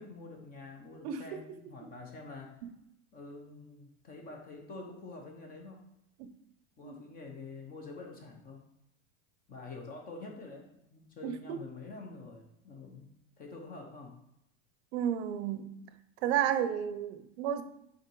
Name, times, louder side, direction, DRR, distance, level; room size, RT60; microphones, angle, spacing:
voice 1, 0.0-2.6 3.1-5.8 6.8-8.6 9.5-13.1 13.4-14.2, left 3 dB, 25° left, 1.1 m, -47 dB
voice 2, 1.0-1.4 2.6-2.7 6.2-6.3 6.8-7.0 11.2-11.6 14.9-15.7 16.2-17.6, right 9 dB, 60° right, 0.8 m, -32 dB
7.6 x 4.1 x 4.7 m
supercardioid pair, 170°, 38 cm